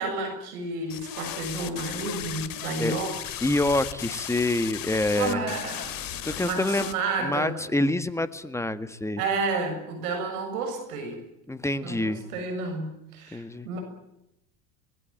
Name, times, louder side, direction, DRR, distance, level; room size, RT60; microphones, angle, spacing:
voice 1, 0.0-3.1 5.2-7.6 9.2-11.2 11.8-13.8, right 3 dB, 70° right, 5 dB, 7.1 m, -31 dB
sound 1, 0.9-6.9, left 11 dB, 45° left, 2.3 m, -36 dB
voice 2, 3.4-5.5 6.2-6.9 7.2-9.2 11.5-12.2 13.3-13.7, left 2 dB, 5° left, 13 dB, 1.7 m, -26 dB
24.5 x 20.0 x 9.0 m, 0.84 s
hypercardioid pair, 80°, 46 cm